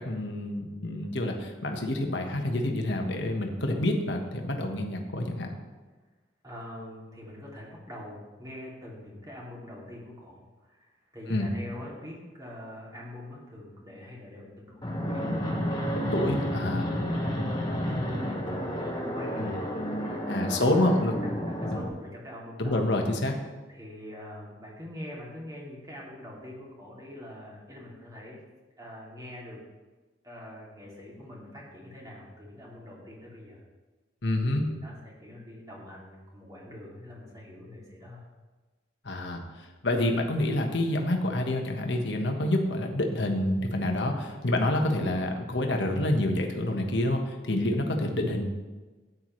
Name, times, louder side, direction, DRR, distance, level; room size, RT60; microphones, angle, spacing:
voice 1, 0.0-5.5 11.3-11.5 16.1-16.9 19.4-19.5 20.3-21.1 21.7-21.8 22.6-23.4 34.2-34.6 39.0-48.4, left 1 dB, 70° left, 3 dB, 1.4 m, -28 dB
voice 2, 6.4-15.3 15.7-20.8 21.2-23.4 23.7-28.4 28.8-29.6 30.2-33.6 34.4-38.3, left 1 dB, 20° right, -4 dB, 2.7 m, -44 dB
Fixed-wing aircraft airplane, 14.8-21.9, equal, 25° left, 1.5 m, -31 dB
13.5 x 9.5 x 3.2 m, 1.3 s
head